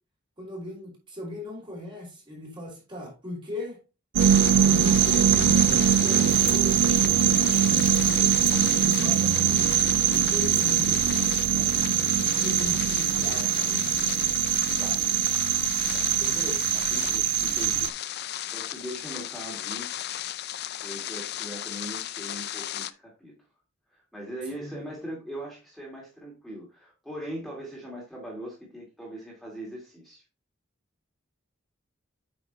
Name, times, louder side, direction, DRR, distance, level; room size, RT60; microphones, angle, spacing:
voice 1, 0.4-3.8 4.6-11.9 12.3-13.8 16.0-16.6 24.5-24.9, left 1 dB, 25° right, 3.4 m, -38 dB
sound 1, 4.1-17.9, right 10 dB, 60° right, 0.3 m, -22 dB
sound 2, 4.2-22.9, left 12 dB, 55° left, 0.5 m, -35 dB
Frying (food), 6.3-11.3, left 8 dB, 90° left, 1.1 m, -43 dB
voice 2, 16.7-17.9 18.2-20.1 20.8-23.3 24.1-30.2, right 1 dB, ahead, 2.4 m, -40 dB
8.7 x 5.9 x 3.0 m
head